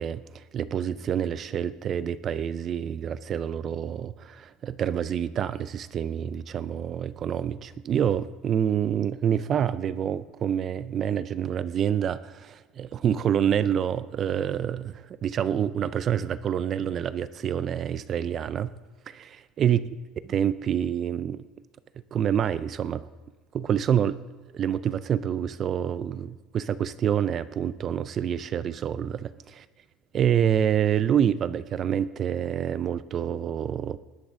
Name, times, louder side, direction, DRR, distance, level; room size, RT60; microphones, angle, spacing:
voice 1, 0.0-18.7 19.1-19.8 20.3-21.4 22.1-23.1 23.5-24.2 24.5-29.6 30.1-34.0, right 9 dB, 30° right, 15 dB, 0.3 m, -27 dB
19.5 x 11.5 x 3.7 m, 1.4 s
cardioid pair, 160°, 0 cm